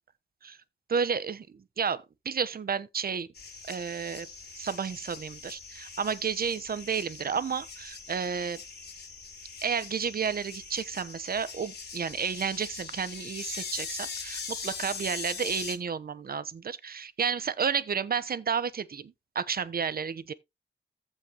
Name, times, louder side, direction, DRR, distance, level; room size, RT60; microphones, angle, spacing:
voice 1, 0.9-1.5 1.8-3.3 3.7-4.3 4.6-8.6 9.6-20.3, right 6 dB, 55° right, 0.9 m, -31 dB
sound 1, 3.3-15.8, left 5 dB, 60° left, 3.7 m, -41 dB
15.0 x 5.3 x 2.9 m
wide cardioid pair, 95°, 19 cm